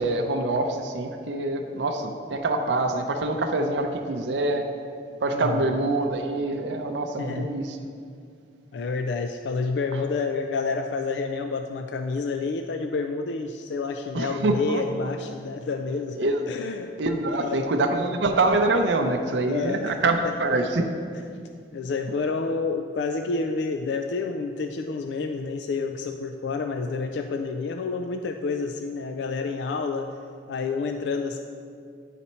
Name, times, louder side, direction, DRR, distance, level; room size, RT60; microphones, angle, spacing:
voice 1, 0.0-4.7 5.2-7.8 14.1-14.8 16.1-16.4 17.0-20.9, right 2 dB, 90° right, 4 dB, 0.5 m, -25 dB
voice 2, 5.3-5.8 7.2-7.5 8.7-16.2 16.5-16.9 17.3-17.7 19.5-20.3 21.7-30.1 30.5-31.4, left 4 dB, 75° left, 6 dB, 0.3 m, -29 dB
9.9 x 4.1 x 4.3 m, 2.3 s
head